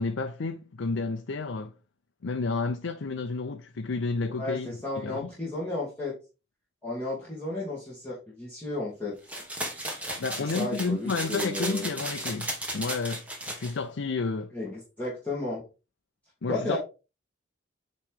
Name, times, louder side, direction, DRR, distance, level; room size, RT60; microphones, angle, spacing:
voice 1, 0.0-1.7 2.2-4.7 5.0-5.3 10.2-14.5 16.4-16.8, left 4 dB, 85° left, 0.6 m, -31 dB
voice 2, 4.4-6.2 6.8-9.2 10.4-11.9 14.5-15.7 16.5-16.8, left 2 dB, 10° left, 2.0 m, -33 dB
sound 1, 9.3-13.7, right 1 dB, 5° right, 1.3 m, -35 dB
8.8 x 3.1 x 3.7 m
head